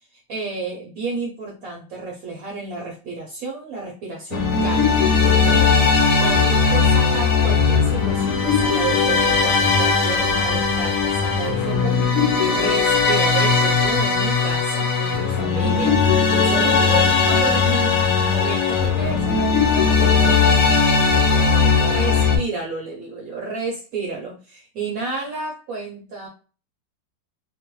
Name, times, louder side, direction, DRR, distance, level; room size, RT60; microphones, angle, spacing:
voice 1, 0.1-5.7 6.2-12.0 12.5-26.3, right 4 dB, 60° right, -2 dB, 1.0 m, -31 dB
sound 1, 4.3-22.4, left 5 dB, 65° left, 0.8 m, -18 dB
3.0 x 2.1 x 3.0 m, 0.36 s
omnidirectional pair, 2.0 m